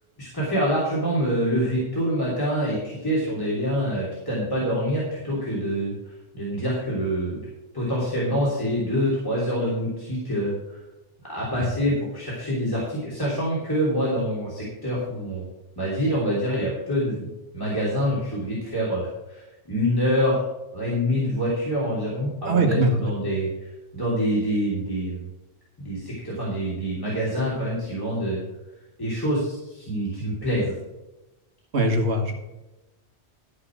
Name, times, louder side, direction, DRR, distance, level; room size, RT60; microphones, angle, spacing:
voice 1, 0.2-5.9 6.3-7.4 7.7-10.8 11.3-15.4 15.8-17.3 17.5-20.4 20.7-23.5 23.9-25.3 25.8-28.4 29.0-30.7, equal, 20° left, -7 dB, 3.2 m, -26 dB
voice 2, 22.5-23.1 31.7-32.3, right 1 dB, 65° right, 2 dB, 2.1 m, -22 dB
13.0 x 5.6 x 6.1 m, 1.0 s
omnidirectional pair, 1.2 m